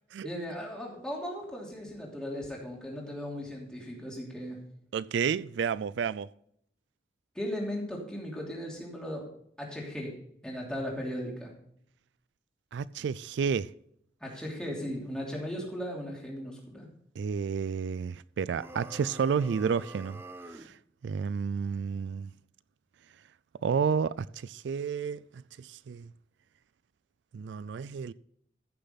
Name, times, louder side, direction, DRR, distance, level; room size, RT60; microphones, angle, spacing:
voice 1, 0.2-4.6 7.3-9.2 9.6-10.1 10.4-11.5 14.2-16.9, equal, 5° left, 3.0 m, -37 dB
voice 2, 4.9-6.3 12.7-13.7 17.2-20.2 20.5-20.7 21.0-22.3 23.6-25.2 25.6-26.1 27.3-28.1, right 6 dB, 80° right, 0.3 m, -31 dB
sound 1, 18.5-20.7, right 2 dB, 15° right, 0.7 m, -46 dB
14.5 x 6.8 x 4.0 m
head